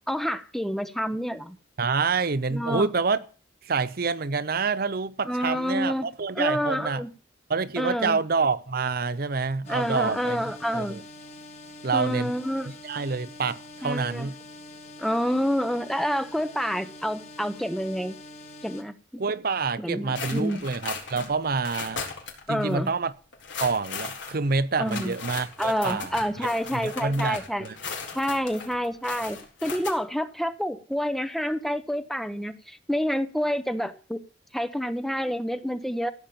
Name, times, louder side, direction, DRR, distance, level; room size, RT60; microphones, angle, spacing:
voice 1, 0.1-1.6 2.5-2.9 5.3-6.1 6.4-7.1 7.8-8.2 9.7-11.0 11.9-12.7 13.8-14.3 15.0-18.2 18.6-19.2 19.8-20.6 22.5-22.9 24.8-25.1 25.6-27.7 28.1-34.2 34.5-36.1, equal, ahead, 0.9 m, -28 dB
voice 2, 1.8-3.2 3.6-7.0 7.5-11.0 11.8-12.3 12.8-14.3 19.2-22.0 22.5-23.1 23.6-26.2 26.7-27.8, right 4 dB, 50° right, 0.7 m, -27 dB
sound 1, 9.6-18.8, left 2 dB, 35° left, 2.7 m, -45 dB
sound 2, 20.1-22.4 22.7-22.8 23.3-29.9, left 5 dB, 75° left, 4.0 m, -37 dB
15.5 x 7.3 x 8.7 m
head